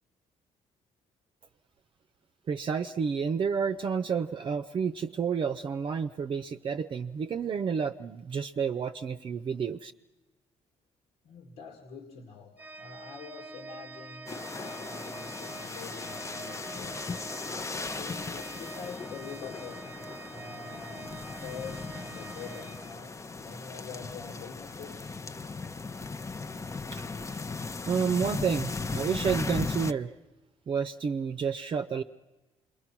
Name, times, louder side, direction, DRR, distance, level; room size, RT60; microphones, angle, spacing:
voice 1, 2.5-9.9 26.9-27.0 27.9-30.1 30.7-32.0, right 6 dB, 45° right, 8 dB, 0.7 m, -30 dB
voice 2, 11.2-17.1 18.0-19.9 20.3-25.1, left 6 dB, 85° left, 2 dB, 2.4 m, -45 dB
Organ, 12.6-23.4, right 3 dB, 15° right, 0.8 m, -46 dB
sound 1, 14.3-29.9, left 4 dB, 25° left, 0.8 m, -37 dB
27.0 x 22.0 x 6.1 m, 1.2 s
cardioid pair, 95°, 12 cm